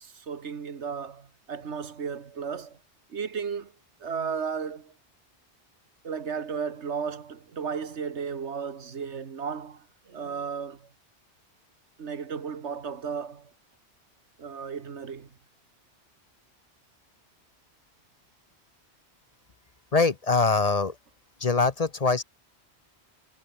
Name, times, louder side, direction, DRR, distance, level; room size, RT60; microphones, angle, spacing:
voice 1, 0.0-2.8 3.1-3.7 4.0-4.9 6.0-10.9 12.0-13.5 14.4-15.3, right 6 dB, 90° right, 1.7 m, -34 dB
voice 2, 19.9-21.0 21.4-22.2, left 4 dB, 40° left, 0.8 m, -23 dB
omnidirectional pair, 1.1 m